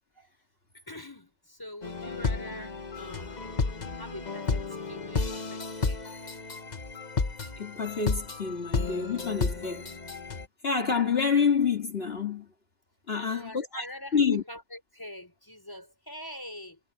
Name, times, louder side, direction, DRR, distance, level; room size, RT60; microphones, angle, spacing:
voice 1, 0.7-3.5 4.0-6.0 13.1-16.8, left 1 dB, 20° left, 5.1 m, -44 dB
sound 1, 1.8-10.4, left 4 dB, 40° left, 1.4 m, -32 dB
voice 2, 7.6-9.9 10.6-12.5 13.1-13.9 14.1-14.4, left 6 dB, 60° left, 2.5 m, -27 dB
omnidirectional pair, 1.1 m